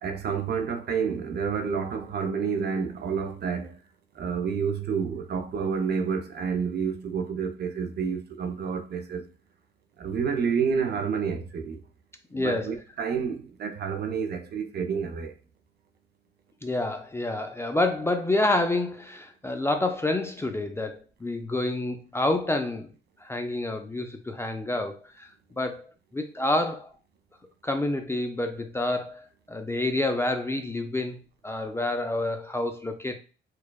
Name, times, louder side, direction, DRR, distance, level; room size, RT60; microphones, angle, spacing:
voice 1, 0.0-3.8 4.1-9.2 10.0-11.8 12.3-15.3, right 6 dB, 55° right, 0.6 m, -29 dB
voice 2, 12.3-12.8 16.6-22.9 23.2-25.3 25.6-25.9 26.1-26.9 27.6-33.2, left 2 dB, 15° left, 0.4 m, -28 dB
4.6 x 2.2 x 2.3 m
cardioid pair, 90°, 20 cm